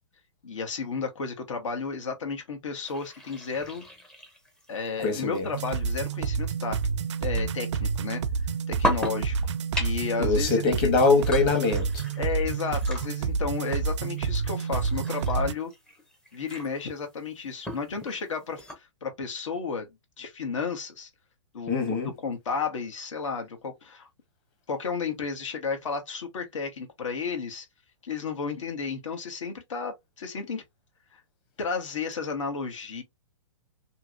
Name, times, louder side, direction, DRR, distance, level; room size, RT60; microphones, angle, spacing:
voice 1, 0.4-3.8 4.7-6.8 7.2-8.2 8.7-9.4 9.8-10.9 12.2-15.7 16.3-19.9 20.2-21.1 21.5-24.1 24.7-27.7 28.0-30.6 31.1-31.2 31.6-33.0, left 5 dB, 80° left, 1.1 m, -32 dB
sound 1, 2.8-18.8, left 1 dB, 5° left, 0.5 m, -39 dB
voice 2, 5.0-5.5 10.2-12.0 21.7-22.1, left 4 dB, 25° left, 1.0 m, -23 dB
sound 2, 5.5-15.5, right 5 dB, 65° right, 0.4 m, -29 dB
2.8 x 2.7 x 2.4 m
hypercardioid pair, 150°, 16 cm